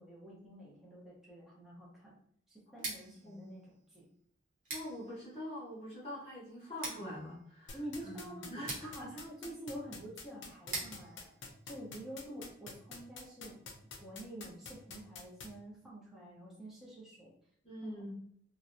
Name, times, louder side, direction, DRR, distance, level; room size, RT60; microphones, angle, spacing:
voice 1, 0.0-2.2 2.5-4.1 7.7-8.5 8.8-11.3 11.7-17.3 17.8-18.0, right 1 dB, ahead, -6 dB, 0.6 m, -48 dB
Scissors, 2.7-12.5, right 3 dB, 45° right, 0.9 m, -48 dB
voice 2, 3.2-3.6 4.7-9.1 17.6-18.2, left 1 dB, 30° left, -7 dB, 0.8 m, -44 dB
sound 1, 7.7-15.5, left 4 dB, 85° left, 0.5 m, -46 dB
2.6 x 2.0 x 2.5 m, 0.67 s
head